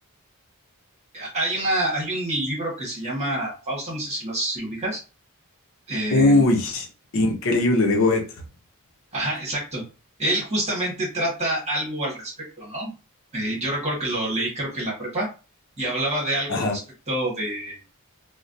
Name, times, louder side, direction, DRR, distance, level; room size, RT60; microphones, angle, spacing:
voice 1, 1.1-5.0 5.9-6.5 9.1-9.8 10.2-12.9 13.3-15.3 15.8-16.7 17.1-17.8, right 1 dB, 30° right, 1.4 m, -27 dB
voice 2, 6.1-6.9 7.1-8.2 16.5-16.8, left 2 dB, 60° left, 0.6 m, -19 dB
3.2 x 2.1 x 2.6 m
head